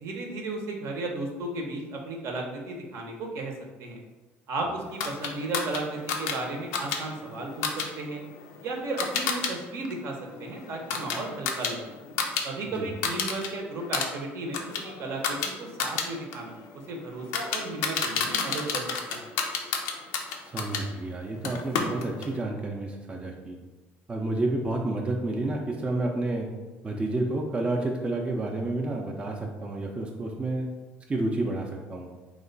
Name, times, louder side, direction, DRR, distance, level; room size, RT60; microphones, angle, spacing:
voice 1, 0.0-3.5 3.8-4.0 4.5-8.2 8.6-11.9 12.4-18.8 19.1-19.3, right 2 dB, 65° right, 1 dB, 0.7 m, -34 dB
sound 1, 5.0-9.5 9.8-12.5 12.8-13.5 13.8-20.9 21.4-22.4, left 5 dB, 90° left, 0.4 m, -31 dB
voice 2, 20.3-23.6 24.1-26.5 26.8-30.7 31.1-32.1, right 2 dB, 20° right, 1 dB, 0.4 m, -30 dB
3.0 x 2.2 x 3.8 m, 1.2 s
supercardioid pair, 95°, 5 cm